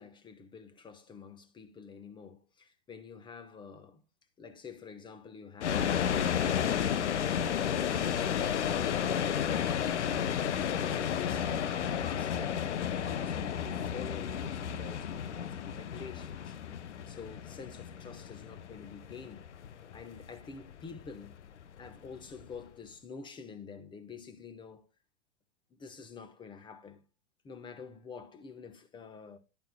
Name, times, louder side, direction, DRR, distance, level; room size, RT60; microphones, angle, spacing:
voice 1, 0.0-4.0 4.4-10.3 10.8-16.6 17.1-19.5 19.9-21.4 21.8-24.9 25.7-27.0 27.4-29.4, left 6 dB, 15° left, 1.1 m, -48 dB
sound 1, 5.6-22.6, left 8 dB, 85° left, 0.8 m, -32 dB
11.5 x 8.9 x 2.2 m
hypercardioid pair, 130°, 34 cm